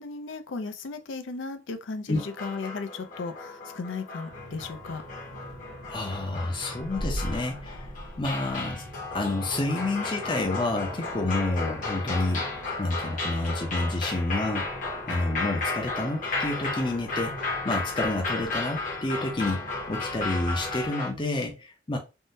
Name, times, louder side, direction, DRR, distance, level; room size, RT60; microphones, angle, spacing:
voice 1, 0.0-5.0, left 4 dB, 85° left, 0.4 m, -36 dB
sound 1, 2.1-21.1, left 3 dB, 45° left, 0.9 m, -34 dB
sound 2, 4.3-20.9, right 1 dB, 80° right, 0.9 m, -47 dB
sound 3, 4.7-4.8 5.1-5.2 5.4-5.6 5.9-6.1 6.7-8.6 9.2-9.3 10.1-10.2 11.2-11.3 11.5-11.7 12.0-12.3 12.8-13.0 13.3-13.5 14.4-15.4, equal, 35° right, 0.6 m, -38 dB
voice 2, 5.9-7.9 8.2-8.8 9.1-12.4 12.8-14.7 15.1-17.3 17.6-22.0, left 2 dB, 25° left, 0.5 m, -29 dB
3.5 x 2.1 x 2.6 m
head